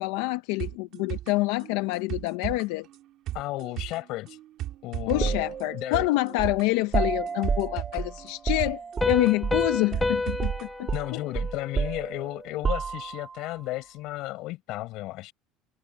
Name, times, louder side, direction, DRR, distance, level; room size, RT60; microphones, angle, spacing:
voice 1, 0.0-2.9 5.1-11.2, left 20 dB, 80° left, 0.7 m, -27 dB
sound 1, 0.6-10.6 10.9-11.0, right 13 dB, 45° right, 2.3 m, -37 dB
voice 2, 3.3-4.4 4.8-5.4 5.7-6.1 10.9-15.3, left 18 dB, 55° left, 5.3 m, -34 dB
sound 2, 5.2-9.6 9.9-10.1 10.4-13.4, right 5 dB, 20° right, 3.3 m, -31 dB
Piano, 9.0-12.4, left 3 dB, 10° left, 0.9 m, -31 dB
cardioid pair, 170°, 0 cm